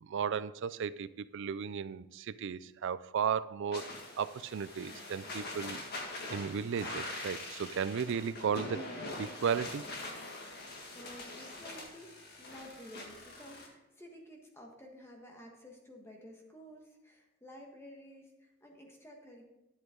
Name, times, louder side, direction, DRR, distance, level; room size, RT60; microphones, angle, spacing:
voice 1, 0.0-3.9 4.2-5.8 6.3-8.8 9.2-9.8, right 7 dB, 55° right, 0.4 m, -35 dB
sound 1, 3.7-13.7, left 2 dB, 45° left, 1.8 m, -43 dB
voice 2, 10.9-19.5, equal, 10° left, 1.4 m, -52 dB
11.0 x 8.3 x 3.7 m
head